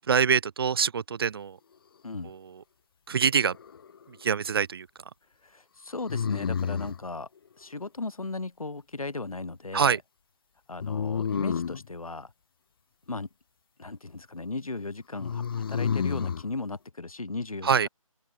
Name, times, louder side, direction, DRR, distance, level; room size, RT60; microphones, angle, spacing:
voice 1, 0.1-1.6 2.2-2.6 3.1-3.6 4.1-4.9 9.7-10.0 17.6-17.9, right 6 dB, 40° right, 0.9 m, -25 dB
sound 1, 3.3-4.0 6.1-7.0 10.8-11.9 15.2-16.4, left 7 dB, 40° left, 0.7 m, -30 dB
voice 2, 5.4-7.3 7.6-10.0 10.7-12.3 13.1-13.3 13.8-17.9, left 3 dB, 80° left, 3.4 m, -36 dB
open air
figure-of-eight pair, 155°, 18 cm